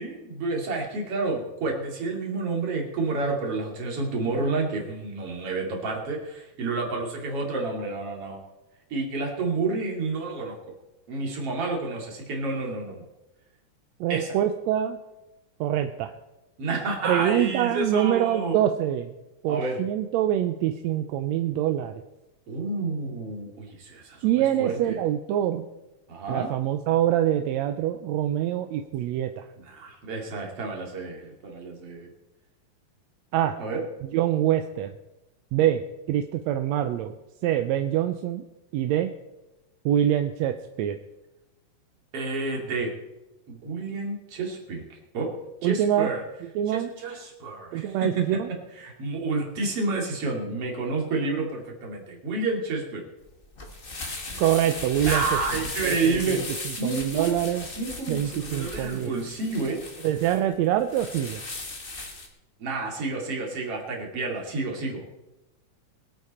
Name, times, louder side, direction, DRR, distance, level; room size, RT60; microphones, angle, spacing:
voice 1, 0.0-8.4 8.9-10.6 11.1-13.0 14.1-14.4 16.6-18.6 19.5-19.8 22.5-25.0 26.1-26.5 29.6-32.1 33.6-33.8 42.1-42.9 43.5-44.8 45.1-45.3 45.6-46.2 46.7-48.4 48.8-53.0 55.0-57.3 57.8-59.8 62.6-65.0, right 3 dB, 50° right, 0 dB, 3.4 m, -29 dB
voice 2, 14.0-15.0 15.6-16.1 17.0-19.1 19.4-22.0 24.2-25.7 26.3-29.4 33.3-33.6 34.1-34.9 35.5-35.8 36.1-37.1 37.4-38.4 38.7-39.1 39.8-41.0 45.6-46.1 46.5-46.9 47.7-48.5 54.4-55.2 55.8-57.7 58.1-59.1 60.0-61.4, right 11 dB, 75° right, 7 dB, 1.7 m, -25 dB
sound 1, 53.2-62.3, left 2 dB, 30° left, 1.0 m, -37 dB
23.5 x 8.5 x 4.3 m, 0.98 s
omnidirectional pair, 3.5 m